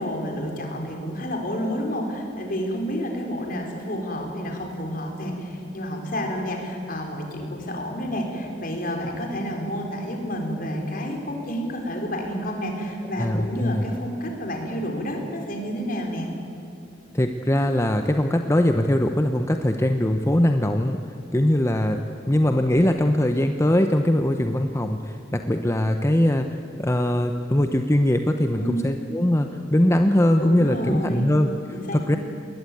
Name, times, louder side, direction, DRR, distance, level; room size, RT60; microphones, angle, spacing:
voice 1, 0.0-16.3 28.5-29.0 30.4-31.3 31.7-32.2, equal, 50° left, 2 dB, 4.4 m, -30 dB
voice 2, 13.2-13.9 17.1-21.0 21.3-32.2, left 1 dB, 15° left, 6 dB, 0.8 m, -21 dB
20.0 x 20.0 x 9.3 m, 2.7 s
head